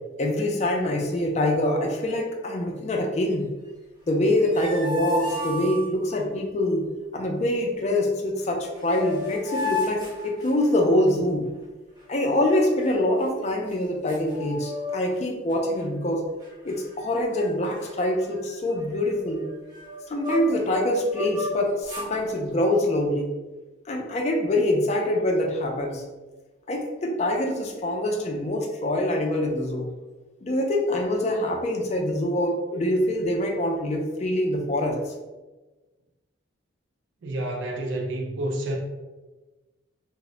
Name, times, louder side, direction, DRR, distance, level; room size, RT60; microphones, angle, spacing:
voice 1, 0.2-3.5 4.1-6.8 7.1-11.5 12.1-16.3 16.6-19.5 20.1-23.3 23.9-26.0 26.7-29.9 30.4-35.0, left 1 dB, 35° left, 1 dB, 0.3 m, -25 dB
sound 1, 4.2-6.2 8.4-8.5 8.8-11.0 12.3-13.2 13.7-13.8 14.1-15.2 15.5-15.8 16.4-17.0 17.3-17.5 17.8-20.7 21.1-22.1, left 2 dB, 20° right, 0.6 m, -33 dB
voice 2, 37.2-38.8, right 1 dB, 75° right, 1 dB, 0.4 m, -29 dB
2.0 x 2.0 x 3.6 m, 1.2 s
head